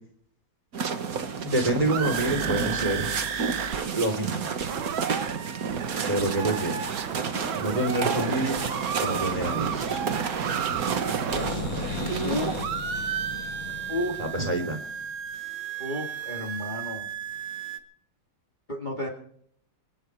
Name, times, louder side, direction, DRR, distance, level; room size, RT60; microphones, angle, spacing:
sound 1, 0.7-12.6, right 6 dB, 50° right, 1.6 m, -30 dB
voice 1, 1.4-3.1 3.9-4.5 6.1-6.9 7.6-8.7 9.0-10.0 14.2-14.8, right 1 dB, 15° right, 4 dB, 3.1 m, -27 dB
sound 2, 1.8-3.8 4.0-4.1 4.4-12.3 12.6-17.8, right 8 dB, 70° right, 1.9 m, -33 dB
sound 3, 11.3-15.1, left 7 dB, 85° left, 2.1 m, -37 dB
voice 2, 13.9-14.2 15.8-17.1 18.7-19.1, left 1 dB, 20° left, 1 dB, 2.5 m, -31 dB
26.0 x 10.0 x 4.7 m, 0.64 s
omnidirectional pair, 2.2 m